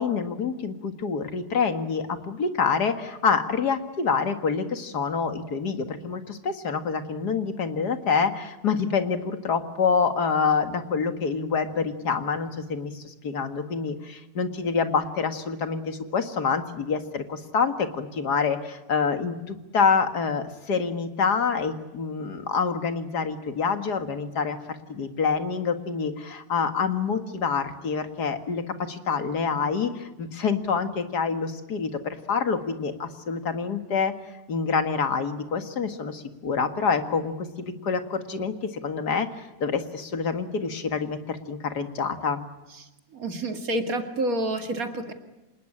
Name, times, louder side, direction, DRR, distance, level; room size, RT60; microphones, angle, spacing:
voice 1, 0.0-34.1 34.5-37.5 37.8-42.4, left 5 dB, 70° left, 8 dB, 2.4 m, -27 dB
voice 2, 43.1-45.1, right 1 dB, 55° right, 7 dB, 2.6 m, -28 dB
26.5 x 20.0 x 10.0 m, 1.0 s
omnidirectional pair, 1.8 m